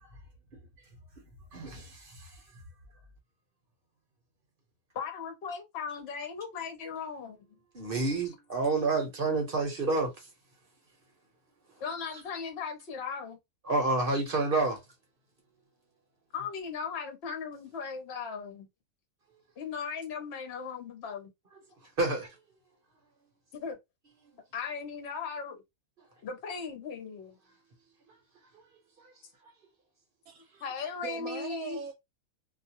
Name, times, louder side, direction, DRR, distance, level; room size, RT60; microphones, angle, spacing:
voice 1, 1.5-2.4 7.7-10.3 13.6-14.8 21.8-22.4 28.5-28.6 29.0-29.1, right 3 dB, 45° right, 0.9 m, -29 dB
voice 2, 4.9-7.4 11.8-13.4 16.3-18.7 19.6-21.3 23.5-23.8 24.5-25.6 26.2-27.4 30.6-31.8, left 6 dB, 55° left, 0.9 m, -37 dB
voice 3, 30.3-31.9, right 8 dB, 80° right, 1.0 m, -41 dB
2.5 x 2.2 x 2.8 m
omnidirectional pair, 1.5 m